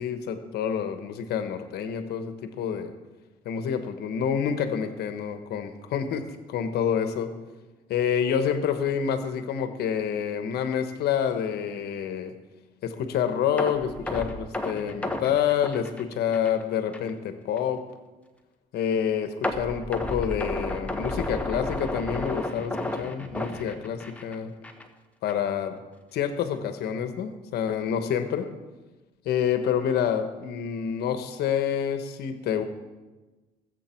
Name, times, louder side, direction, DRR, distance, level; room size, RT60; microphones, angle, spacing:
voice 1, 0.0-2.9 3.4-7.3 7.9-12.3 12.8-17.9 18.7-24.5 25.2-25.8 26.1-28.5 29.2-32.6, left 8 dB, 70° left, 9 dB, 1.2 m, -28 dB
sound 1, 13.6-16.6 16.9-17.1 17.6-17.7 19.4-24.3 24.6-24.8 25.3-25.4, left 1 dB, 10° left, 1.3 m, -32 dB
20.5 x 7.9 x 4.5 m, 1.2 s
cardioid pair, 110°, 17 cm